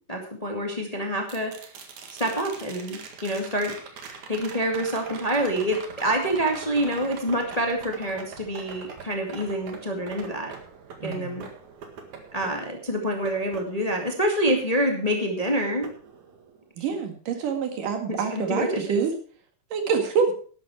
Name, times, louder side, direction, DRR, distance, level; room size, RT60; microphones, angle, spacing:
voice 1, 0.1-1.7 2.2-4.0 4.3-10.5 11.0-11.4 12.3-15.9 18.1-19.0, equal, 15° left, 2 dB, 1.5 m, -27 dB
sound 1, 1.3-15.4 15.8-16.9 19.1-19.2, right 5 dB, 65° right, 3.1 m, -43 dB
voice 2, 11.0-11.4 16.8-19.1 19.7-20.4, right 6 dB, 85° right, 5 dB, 3.6 m, -26 dB
12.0 x 11.5 x 4.6 m, 0.43 s
omnidirectional pair, 3.7 m